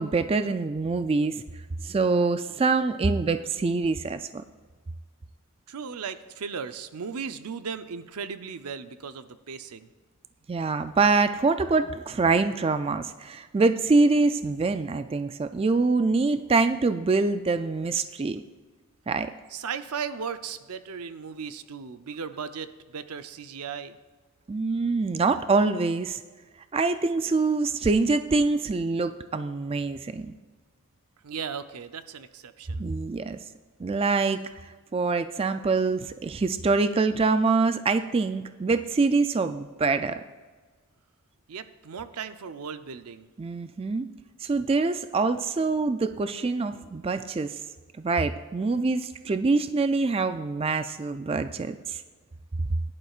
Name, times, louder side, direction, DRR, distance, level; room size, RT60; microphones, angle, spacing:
voice 1, 0.0-1.4 1.8-4.4 10.5-18.4 19.1-19.3 24.5-26.2 26.7-30.3 32.8-33.4 33.8-34.4 34.9-40.2 43.4-44.1 44.4-47.6 48.0-52.0, right 3 dB, 25° right, 11 dB, 0.3 m, -25 dB
voice 2, 5.7-9.9 19.5-24.0 31.2-32.9 41.5-43.3, right 6 dB, 90° right, 11 dB, 0.6 m, -36 dB
16.5 x 11.0 x 2.4 m, 1.4 s
head